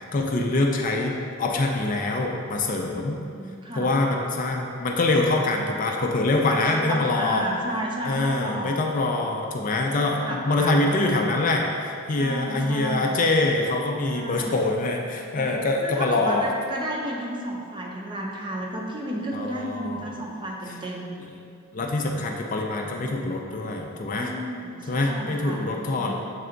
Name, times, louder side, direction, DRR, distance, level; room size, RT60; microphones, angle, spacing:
voice 1, 0.0-3.2 3.8-7.5 8.0-16.5 19.3-20.1 21.7-24.3 24.9-26.1, left 2 dB, 40° left, 1 dB, 0.4 m, -24 dB
voice 2, 2.8-3.9 6.4-8.9 10.0-11.3 12.1-13.1 14.1-14.6 15.3-21.1 22.9-23.1 24.2-26.1, right 1 dB, 20° right, -2 dB, 0.6 m, -33 dB
7.4 x 3.4 x 3.8 m, 2.5 s
head